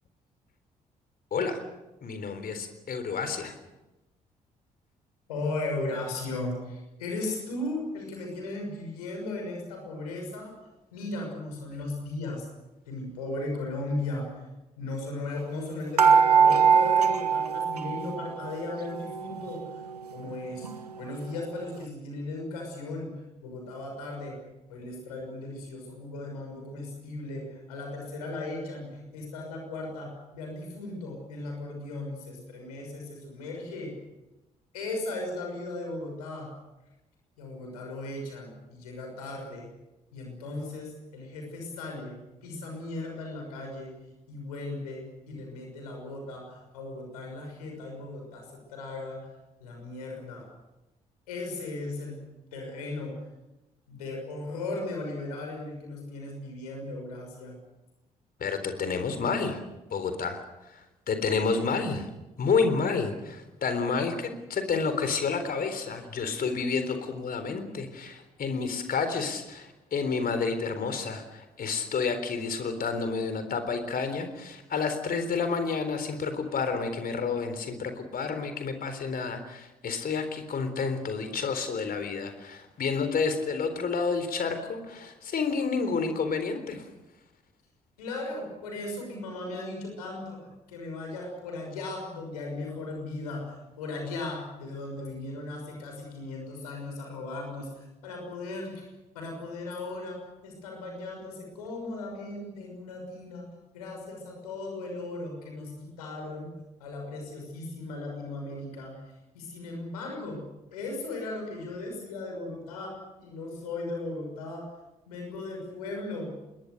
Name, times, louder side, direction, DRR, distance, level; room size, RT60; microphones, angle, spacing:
voice 1, 2.0-3.6 58.4-59.6 59.9-60.4 60.7-60.8 61.1-62.1 62.4-86.9, left 5 dB, 50° left, 9 dB, 3.9 m, -30 dB
voice 2, 5.3-10.6 10.9-12.5 12.9-14.5 14.8-19.8 20.1-20.7 20.9-23.1 23.4-24.4 24.7-34.0 34.7-36.5 37.4-39.7 40.1-43.9 44.3-49.3 49.6-50.5 51.3-52.3 52.5-53.3 53.9-57.6 88.0-90.4 90.7-98.9 99.1-103.4 103.7-106.5 106.8-109.0 109.3-110.4 110.7-114.7 115.1-116.3, left 2 dB, 80° left, 2 dB, 6.2 m, -37 dB
sound 1, 16.0-18.5 18.8-19.8 20.3-20.4 20.6-20.8, right 7 dB, 85° right, 0.8 m, -22 dB
26.0 x 21.5 x 6.7 m, 1.0 s
figure-of-eight pair, 40°, 20 cm